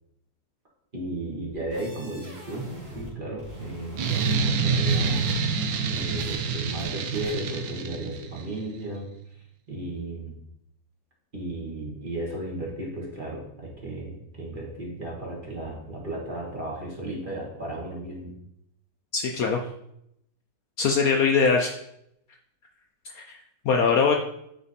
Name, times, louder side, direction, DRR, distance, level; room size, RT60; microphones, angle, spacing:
voice 1, 0.9-5.4 5.9-9.1 9.3-10.4 11.3-18.3, right 2 dB, 30° right, -3 dB, 1.5 m, -35 dB
sound 1, 1.5-3.1 3.4-5.3 5.6-6.3 6.8-6.9 7.1-7.3, equal, 65° right, 2.7 m, -43 dB
sound 2, 4.0-8.4, right 4 dB, 85° right, 1.4 m, -26 dB
voice 2, 19.1-19.6 20.8-21.7 23.1-23.4 23.6-24.1, left 5 dB, 70° left, 3 dB, 0.9 m, -22 dB
8.9 x 3.3 x 4.1 m, 0.76 s
omnidirectional pair, 1.9 m